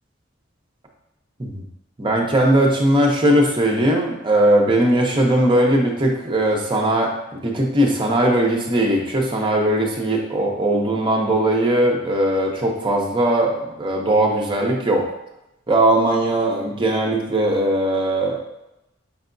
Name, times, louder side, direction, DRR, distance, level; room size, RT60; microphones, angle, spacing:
voice 1, 2.0-7.1 7.4-15.1 15.7-18.4, right 1 dB, 25° right, 0 dB, 0.7 m, -19 dB
5.3 x 3.3 x 2.6 m, 0.91 s
head